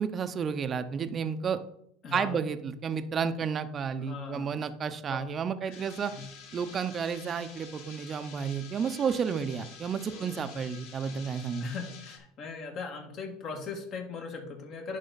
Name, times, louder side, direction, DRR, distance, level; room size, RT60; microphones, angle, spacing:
voice 1, 0.0-1.6 2.1-6.1 6.5-11.7, right 6 dB, 35° right, 10 dB, 0.7 m, -31 dB
voice 2, 2.0-2.5 4.0-4.5 5.0-5.2 5.6-5.8 6.1-6.3 10.1-10.6 11.6-15.0, left 4 dB, 50° left, 3 dB, 1.8 m, -39 dB
Friction - Grinding - Looped, 5.7-12.2, left 6 dB, 70° left, 1.4 m, -49 dB
10.5 x 3.6 x 4.1 m, 0.69 s
supercardioid pair, 95°, 0 cm